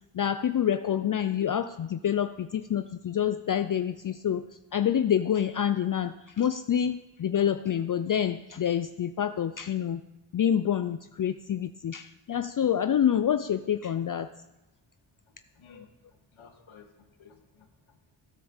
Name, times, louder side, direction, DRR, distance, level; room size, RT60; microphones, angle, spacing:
voice 1, 0.1-4.4 4.7-10.0 10.3-14.3 15.7-15.8, left 9 dB, 45° left, 11 dB, 0.5 m, -27 dB
voice 2, 15.5-18.2, left 6 dB, 75° left, 4 dB, 2.0 m, -56 dB
13.5 x 9.4 x 7.2 m, 0.99 s
cardioid pair, 80°, 48 cm